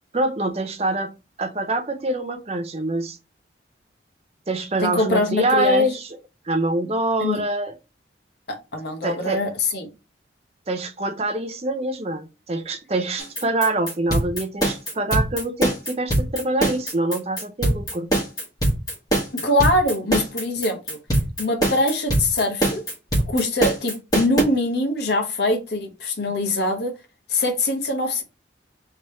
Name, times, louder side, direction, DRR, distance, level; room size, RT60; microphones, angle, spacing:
voice 1, 0.1-3.2 4.5-6.0 6.5-7.7 9.0-9.4 10.7-18.1, right 1 dB, 30° right, 0.6 m, -25 dB
voice 2, 4.8-5.9 7.2-7.4 8.5-9.9 19.3-21.0 21.4-22.8 23.3-26.9 27.3-28.2, left 1 dB, 60° left, 1.0 m, -23 dB
sound 1, 13.2-24.4, right 1 dB, 20° left, 1.4 m, -22 dB
3.4 x 3.1 x 4.2 m
head